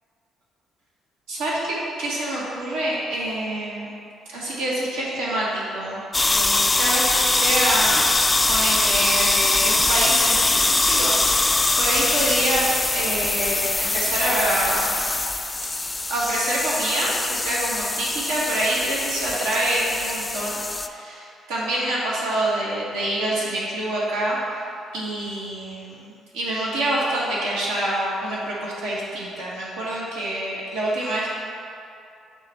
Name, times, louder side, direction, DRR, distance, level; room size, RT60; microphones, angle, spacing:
voice 1, 1.3-3.9 4.3-8.0 8.5-15.0 16.1-24.6 24.9-31.3, right 1 dB, 90° right, -7 dB, 1.4 m, -26 dB
sound 1, 6.1-20.9, left 2 dB, 20° left, 0.3 m, -22 dB
6.0 x 3.3 x 5.6 m, 2.5 s
supercardioid pair, 60°, 0 cm